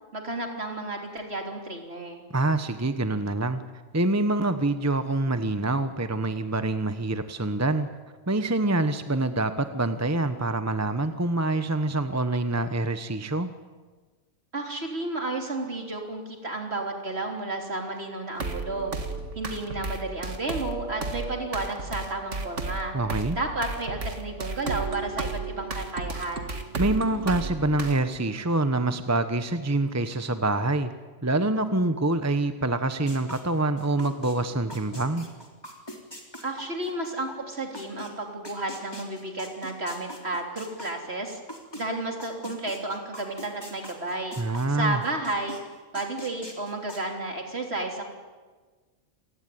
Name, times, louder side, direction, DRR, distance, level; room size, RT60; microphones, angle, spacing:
voice 1, 0.1-2.3 14.5-18.9 19.4-23.0 23.4-26.6 36.4-41.4 41.7-44.4 44.7-45.6 45.9-48.0, right 2 dB, 55° right, 3 dB, 3.8 m, -32 dB
voice 2, 2.3-3.6 3.9-7.9 8.3-13.5 22.9-23.4 26.8-30.9 31.2-35.3 44.4-45.0, right 2 dB, 15° right, 10 dB, 1.0 m, -26 dB
sound 1, 18.4-28.1, right 3 dB, 70° right, 2.3 m, -34 dB
sound 2, 33.1-34.3 34.7-38.1 38.4-41.8 42.2-44.7 45.0-45.6 45.9-47.0, left 1 dB, 20° left, 3.5 m, -42 dB
27.5 x 18.5 x 9.4 m, 1.4 s
omnidirectional pair, 1.3 m